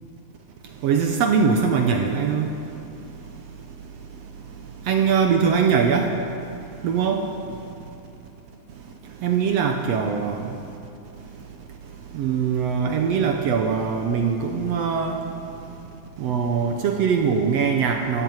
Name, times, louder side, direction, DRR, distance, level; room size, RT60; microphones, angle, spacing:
voice 1, 0.8-2.5 4.9-6.1 6.8-7.2 9.2-10.4 12.1-15.2 16.2-18.2, right 6 dB, 75° right, 3 dB, 1.5 m, -21 dB
14.0 x 7.7 x 8.9 m, 2.7 s
omnidirectional pair, 3.8 m